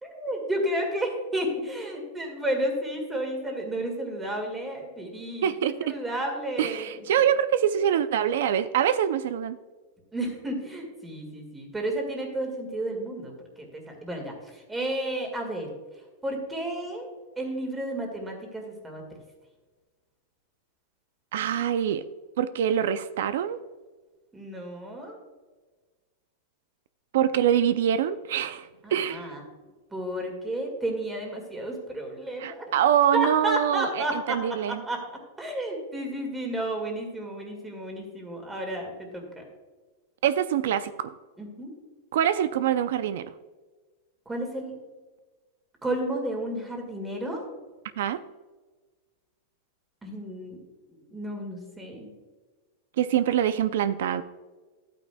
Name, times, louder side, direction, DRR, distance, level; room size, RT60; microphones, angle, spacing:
voice 1, 0.0-5.5 5.8-7.0 10.1-13.3 13.7-15.7 16.2-17.1 17.4-19.0 24.3-25.2 28.8-29.4 29.9-32.6 33.1-34.4 34.7-35.0 35.4-39.4 41.4-41.7 44.3-44.7 45.8-47.4 50.0-50.6 50.9-52.1, right 1 dB, 10° right, 2 dB, 1.9 m, -32 dB
voice 2, 5.4-5.9 6.6-9.6 21.3-22.0 22.4-23.6 27.1-29.3 32.4-34.8 40.2-41.1 42.1-43.3 48.0-48.2 53.0-54.2, right 9 dB, 75° right, 12 dB, 0.4 m, -24 dB
12.0 x 9.1 x 2.2 m, 1.3 s
supercardioid pair, 160°, 0 cm